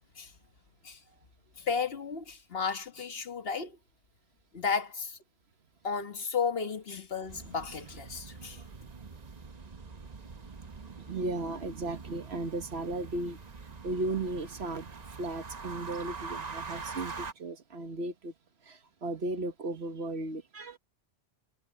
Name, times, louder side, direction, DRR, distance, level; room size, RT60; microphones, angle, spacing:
voice 1, 1.6-3.8 4.5-5.2 5.8-8.6, left 5 dB, 65° left, 1.6 m, -33 dB
sound 1, 7.3-17.3, right 4 dB, 40° right, 1.1 m, -44 dB
voice 2, 8.3-9.1 10.7-18.3 18.6-20.8, right 2 dB, 75° right, 1.6 m, -36 dB
omnidirectional pair, 1.1 m